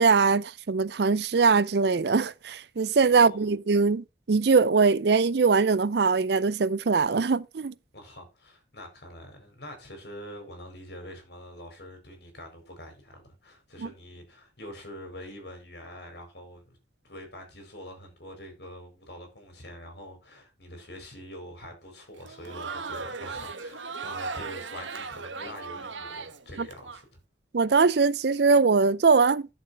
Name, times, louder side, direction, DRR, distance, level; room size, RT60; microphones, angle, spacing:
voice 1, 0.0-7.7 13.8-13.9 27.5-29.5, right 4 dB, 60° right, 0.5 m, -22 dB
voice 2, 3.1-3.5 7.9-16.8 17.0-27.2, equal, 60° left, 5.0 m, -45 dB
Crowd, 22.2-27.0, right 4 dB, 85° right, 1.3 m, -37 dB
11.5 x 7.1 x 4.1 m
head